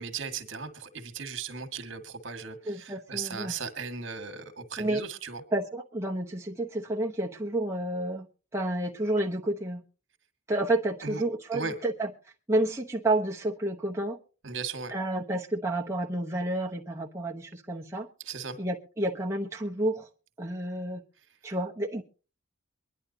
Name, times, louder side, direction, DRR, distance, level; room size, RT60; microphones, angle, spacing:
voice 1, 0.0-5.4 11.0-11.2 11.5-11.7 14.4-14.9 18.2-18.6, right 5 dB, 60° right, 1.7 m, -37 dB
voice 2, 2.7-3.5 4.8-5.0 5.5-8.3 8.5-9.8 10.5-12.1 12.5-14.2 14.9-18.1 18.6-20.1 20.4-21.0 21.4-22.0, right 1 dB, 15° right, 0.9 m, -30 dB
23.5 x 11.0 x 2.8 m
head